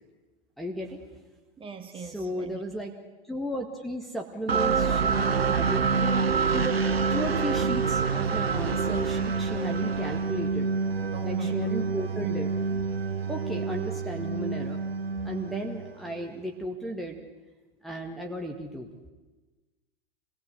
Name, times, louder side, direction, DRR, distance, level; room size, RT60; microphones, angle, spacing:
voice 1, 0.6-1.0 2.0-3.0 3.3-10.7 11.2-12.8 13.3-14.8 15.2-17.2 17.8-18.9, equal, ahead, 0 dB, 2.0 m, -35 dB
voice 2, 1.6-2.6 11.1-11.7, right 6 dB, 15° right, 6 dB, 2.3 m, -41 dB
sound 1, 4.5-16.3, right 5 dB, 75° right, 1.2 m, -27 dB
26.0 x 18.5 x 8.3 m, 1.2 s
figure-of-eight pair, 90°, 30 cm